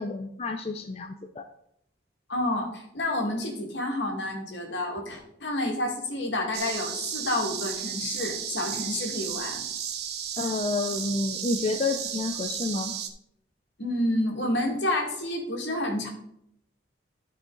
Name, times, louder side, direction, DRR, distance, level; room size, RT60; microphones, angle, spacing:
voice 1, 0.0-1.4 10.4-12.9, left 3 dB, 35° left, 5 dB, 0.4 m, -29 dB
voice 2, 2.3-9.6 13.8-16.1, left 1 dB, 75° left, 1 dB, 2.0 m, -29 dB
sound 1, 6.5-13.1, right 8 dB, 55° right, 0.7 m, -34 dB
12.5 x 4.8 x 3.9 m, 0.76 s
head